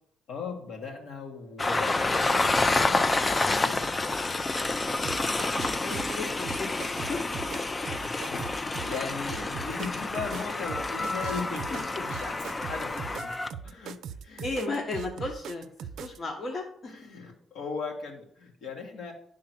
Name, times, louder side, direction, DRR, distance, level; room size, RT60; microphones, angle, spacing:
voice 1, 0.3-3.8 7.9-13.4 13.6-14.0 14.2-14.4 16.9-19.1, left 5 dB, 75° left, 0 dB, 1.9 m, -38 dB
Train, 1.6-13.5, left 2 dB, 25° left, 0.4 m, -29 dB
voice 2, 4.8-5.3 5.6-7.2 14.4-15.6 16.0-16.9, left 2 dB, 45° left, 1 dB, 1.2 m, -35 dB
sound 1, 5.0-16.2, right 8 dB, 75° right, 0.4 m, -40 dB
9.4 x 3.7 x 6.0 m, 0.66 s
cardioid pair, 90°, 0 cm